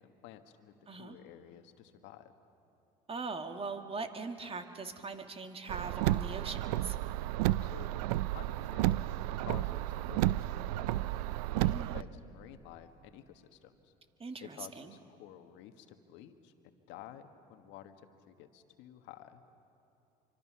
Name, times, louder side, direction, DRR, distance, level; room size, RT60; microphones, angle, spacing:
voice 1, 0.0-2.3 7.6-8.0 8.3-9.2 9.4-11.2 11.6-13.9 14.5-19.4, left 11 dB, 70° left, 8 dB, 1.6 m, -52 dB
voice 2, 0.9-1.2 3.1-7.0 11.6-12.0 14.2-15.0, right 4 dB, 30° right, 6 dB, 2.1 m, -41 dB
Car, 5.7-12.0, right 15 dB, 80° right, 0.5 m, -32 dB
26.0 x 25.0 x 6.0 m, 2.8 s
hypercardioid pair, 70°, 20 cm